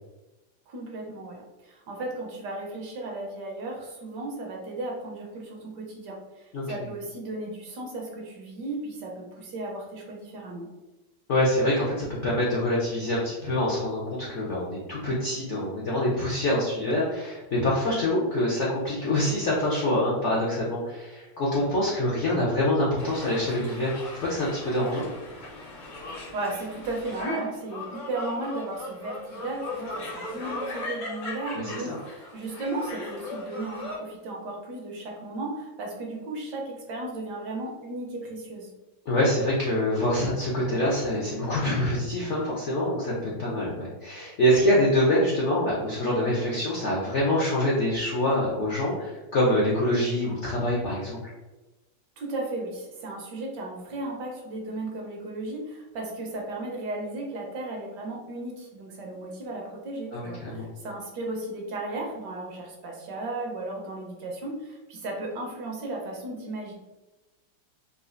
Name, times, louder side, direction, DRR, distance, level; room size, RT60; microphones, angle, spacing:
voice 1, 0.7-10.7 26.1-38.7 52.2-66.7, right 2 dB, 70° right, 0 dB, 1.2 m, -35 dB
voice 2, 11.3-25.1 31.5-32.0 39.1-51.2 60.1-60.7, left 1 dB, 70° left, -5 dB, 0.7 m, -25 dB
sound 1, 23.0-34.0, left 2 dB, 90° left, 1.7 m, -38 dB
4.0 x 2.4 x 2.4 m, 1.1 s
omnidirectional pair, 2.0 m